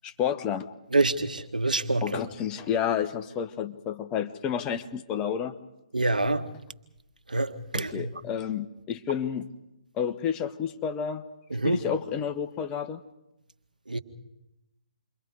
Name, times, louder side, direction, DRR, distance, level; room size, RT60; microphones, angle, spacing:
voice 1, 0.0-0.7 2.0-5.5 7.7-9.5 9.9-11.2 11.6-13.0, left 8 dB, 20° left, 1.2 m, -30 dB
voice 2, 0.9-2.0 5.9-6.5 7.3-8.1 11.5-11.8 13.9-14.0, right 2 dB, 85° right, 1.6 m, -26 dB
28.5 x 23.5 x 5.0 m
figure-of-eight pair, 135°, 4 cm